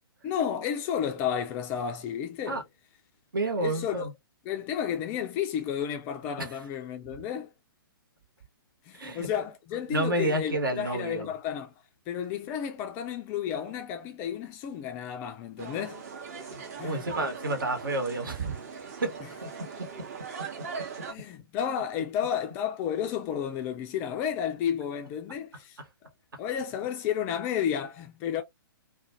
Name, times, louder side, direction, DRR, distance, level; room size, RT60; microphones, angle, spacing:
voice 1, 0.2-2.6 3.6-4.1 4.5-7.5 8.9-11.7 12.1-16.0 16.4-16.5 16.8-17.1 19.2-19.3 21.1-25.8 26.4-28.4, left 9 dB, 20° left, 0.3 m, -32 dB
voice 2, 3.3-4.1 6.4-6.5 8.9-9.3 9.9-11.3 16.5-18.6 19.0-19.1 19.4-19.5, right 2 dB, 65° right, 1.1 m, -30 dB
sound 1, 15.6-21.1, right 5 dB, 40° right, 0.8 m, -40 dB
2.4 x 2.2 x 2.7 m
figure-of-eight pair, 120°, 12 cm